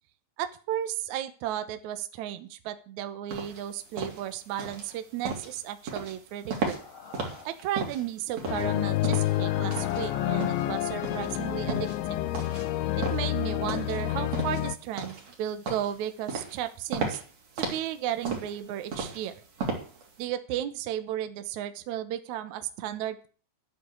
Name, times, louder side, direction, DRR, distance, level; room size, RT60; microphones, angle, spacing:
voice 1, 0.4-6.8 7.4-12.2 13.0-17.2 17.6-19.3 20.2-23.3, right 11 dB, 85° right, 10 dB, 1.6 m, -34 dB
sound 1, 3.3-20.2, right 4 dB, 40° right, 3.8 m, -36 dB
sound 2, 6.6-7.7 9.0-11.1, left 4 dB, 45° left, 1.8 m, -44 dB
sound 3, 8.5-14.8, left 15 dB, 90° left, 3.1 m, -29 dB
11.5 x 8.4 x 8.2 m, 0.38 s
omnidirectional pair, 5.1 m